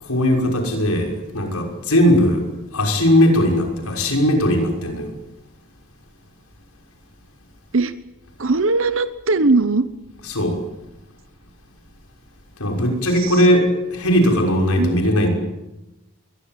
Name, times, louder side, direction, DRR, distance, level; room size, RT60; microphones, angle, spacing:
voice 1, 0.0-2.4 2.7-5.1 10.3-10.6 12.6-15.3, equal, 90° left, 3 dB, 6.0 m, -18 dB
voice 2, 8.4-9.9 13.2-13.5 14.8-15.0, right 3 dB, 60° right, 12 dB, 1.0 m, -19 dB
22.5 x 22.0 x 9.3 m, 1.0 s
head